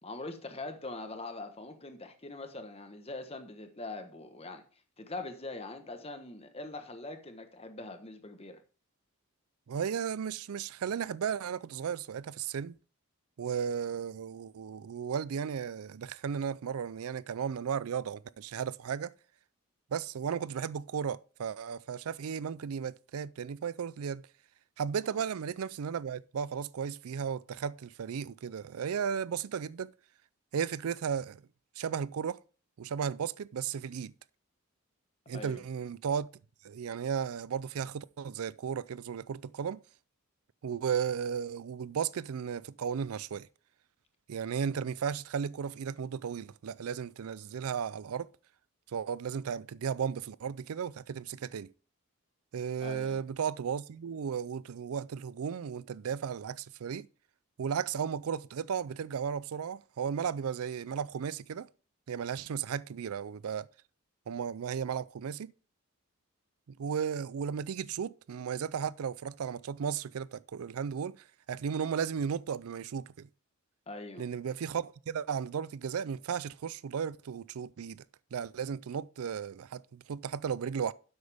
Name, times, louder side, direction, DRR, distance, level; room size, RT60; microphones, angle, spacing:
voice 1, 0.0-4.6 5.0-8.6 25.0-25.2 35.3-35.6 52.8-53.2 73.9-74.2, left 2 dB, 30° left, 1.2 m, -42 dB
voice 2, 9.7-12.7 13.4-19.1 19.9-24.2 24.8-29.9 30.5-31.4 31.8-32.4 32.8-34.1 35.3-36.3 36.6-39.8 40.6-43.5 44.3-48.3 48.9-51.7 52.5-57.1 57.6-61.7 62.1-63.7 64.3-65.5 66.7-71.2 71.5-73.3 74.2-78.0 78.3-80.9, right 7 dB, 90° right, 0.4 m, -35 dB
10.5 x 7.9 x 3.5 m
head